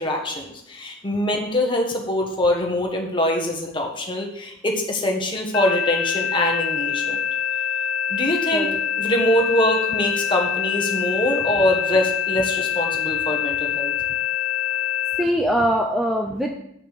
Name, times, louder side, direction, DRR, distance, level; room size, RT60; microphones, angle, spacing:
voice 1, 0.0-7.2 8.1-8.7 9.0-13.9, left 1 dB, 25° left, 1 dB, 1.6 m, -23 dB
sound 1, 5.5-15.2, left 9 dB, 65° left, 1.0 m, -25 dB
voice 2, 15.2-16.5, equal, ahead, 1 dB, 0.6 m, -22 dB
8.9 x 5.9 x 6.7 m, 0.76 s
head